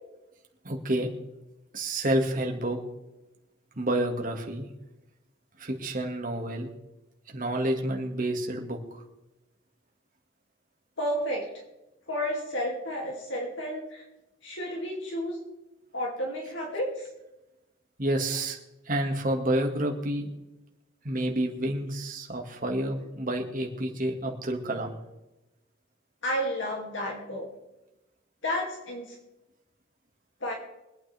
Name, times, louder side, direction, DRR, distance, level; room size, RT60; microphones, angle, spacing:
voice 1, 0.6-1.1 1.7-2.8 3.7-4.7 5.6-6.7 7.3-9.0 18.0-18.6 18.9-20.3 21.0-25.0, right 1 dB, 45° right, 2 dB, 1.9 m, -29 dB
voice 2, 11.0-11.5 12.1-14.0 14.4-15.4 15.9-17.1 26.2-27.5 28.4-29.1 30.4-30.5, equal, 70° left, -1 dB, 2.6 m, -31 dB
24.0 x 9.1 x 3.4 m, 0.98 s
head